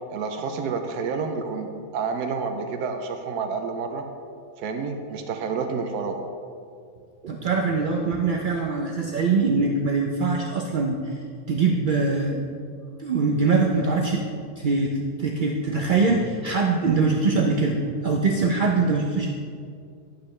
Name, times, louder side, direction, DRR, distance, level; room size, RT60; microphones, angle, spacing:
voice 1, 0.1-4.0 4.6-6.2, right 5 dB, 85° right, 5 dB, 1.2 m, -29 dB
voice 2, 7.2-11.2 11.5-12.4 13.0-14.2 14.6-19.3, right 4 dB, 55° right, -1 dB, 0.5 m, -23 dB
11.5 x 8.5 x 3.2 m, 2.3 s
omnidirectional pair, 1.6 m